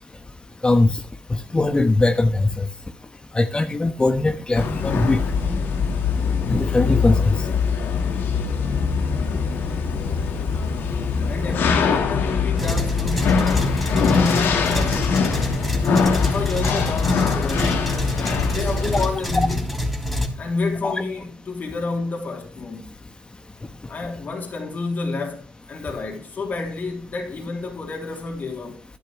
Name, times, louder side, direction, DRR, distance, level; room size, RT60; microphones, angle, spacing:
voice 1, 0.6-1.0 1.5-2.7 3.3-5.2 6.5-7.3 20.8-20.9, left 2 dB, 25° left, 1.2 m, -20 dB
sound 1, 4.5-19.1, left 5 dB, 80° left, 1.6 m, -23 dB
voice 2, 11.3-15.5 16.2-18.0 18.5-19.7 20.4-22.9 23.9-28.8, left 3 dB, 50° left, 3.2 m, -29 dB
sound 2, 12.6-20.3, left 1 dB, ahead, 3.2 m, -26 dB
11.5 x 10.5 x 3.2 m
cardioid pair, 65°, 4 cm